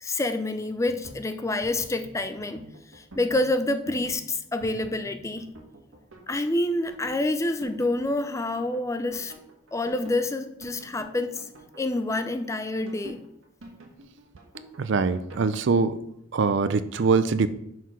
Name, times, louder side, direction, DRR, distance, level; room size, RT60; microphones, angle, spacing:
voice 1, 0.0-2.7 2.9-5.5 6.3-9.3 9.7-11.4 11.8-13.2, left 2 dB, 15° left, 9 dB, 0.4 m, -27 dB
sound 1, 0.7-15.5, right 1 dB, 90° right, 1.5 m, -47 dB
voice 2, 14.8-16.0 16.3-17.5, right 4 dB, 60° right, 13 dB, 0.4 m, -23 dB
5.9 x 4.7 x 5.7 m, 0.76 s
head